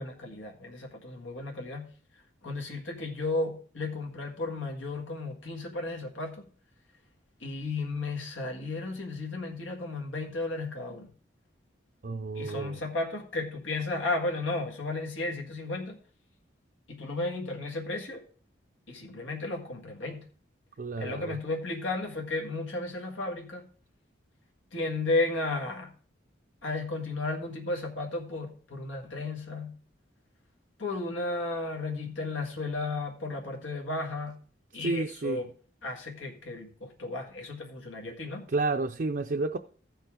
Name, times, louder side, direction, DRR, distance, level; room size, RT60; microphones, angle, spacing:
voice 1, 0.0-1.9 2.4-6.5 7.4-11.1 12.3-16.0 16.9-18.2 18.9-20.2 21.0-23.7 24.7-25.9 26.6-29.8 30.8-34.4 34.7-35.5 35.8-38.4, left 2 dB, 90° left, 1.8 m, -34 dB
voice 2, 12.0-12.8 20.8-21.3 34.8-35.4 38.5-39.6, right 3 dB, 50° right, 0.5 m, -30 dB
15.0 x 5.6 x 3.7 m
head